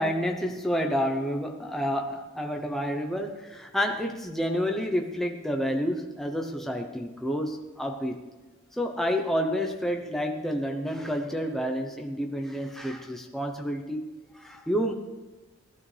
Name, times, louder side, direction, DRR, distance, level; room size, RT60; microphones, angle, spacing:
voice 1, 0.0-8.2 8.8-14.1 14.3-14.9, equal, ahead, 2 dB, 0.8 m, -29 dB
18.5 x 12.5 x 3.4 m, 1.2 s
head